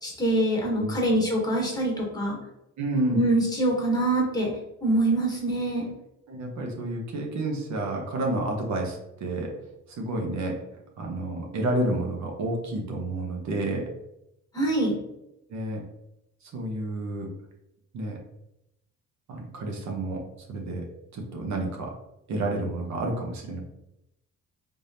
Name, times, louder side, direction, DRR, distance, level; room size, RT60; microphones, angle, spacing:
voice 1, 0.0-2.4 3.1-4.5 4.8-5.9 14.5-15.0, right 1 dB, 15° left, -2 dB, 1.5 m, -24 dB
voice 2, 2.8-3.2 6.3-9.5 9.9-10.6 11.0-13.9 15.5-15.8 16.4-17.3 17.9-18.2 19.3-20.2 20.5-20.8 21.1-21.9 22.3-23.6, right 2 dB, 65° right, 0 dB, 0.9 m, -30 dB
3.5 x 3.4 x 2.7 m, 0.86 s
cardioid pair, 90°, 30 cm